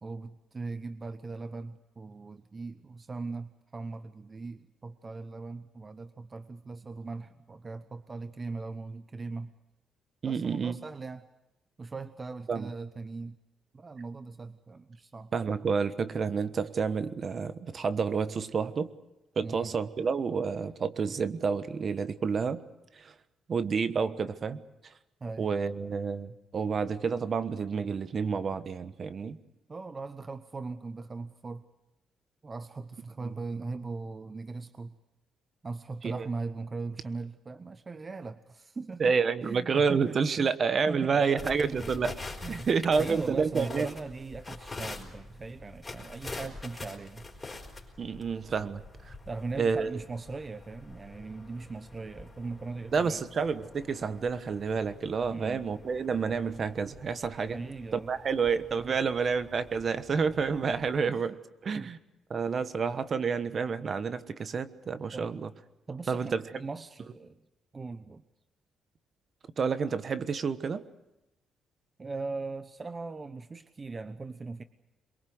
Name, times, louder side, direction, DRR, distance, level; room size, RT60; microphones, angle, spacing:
voice 1, 0.0-9.5 10.2-11.3 11.8-13.4 13.7-15.3 19.4-19.7 25.2-25.5 29.7-31.6 32.4-35.0 35.6-39.1 39.4-40.5 40.9-42.1 42.4-47.3 49.3-53.3 55.3-55.7 57.5-58.1 58.8-59.1 60.2-60.7 61.1-61.3 61.8-61.9 65.1-65.3 65.9-67.4 67.7-68.2 72.0-74.6, right 3 dB, 30° right, 11 dB, 0.9 m, -39 dB
voice 2, 10.2-10.8 12.5-12.7 15.3-18.9 19.4-22.6 22.9-23.1 23.5-24.9 25.4-29.4 33.2-33.4 36.0-36.3 39.0-42.1 42.5-43.9 48.0-49.1 49.6-50.0 52.9-57.6 57.9-61.3 61.6-62.0 62.3-65.5 66.1-66.4 69.6-70.8, right 5 dB, 45° right, 12 dB, 1.2 m, -29 dB
sound 1, 41.4-61.0, left 3 dB, 20° left, 4.7 m, -46 dB
23.0 x 22.5 x 7.9 m, 0.94 s
cardioid pair, 90°, 0 cm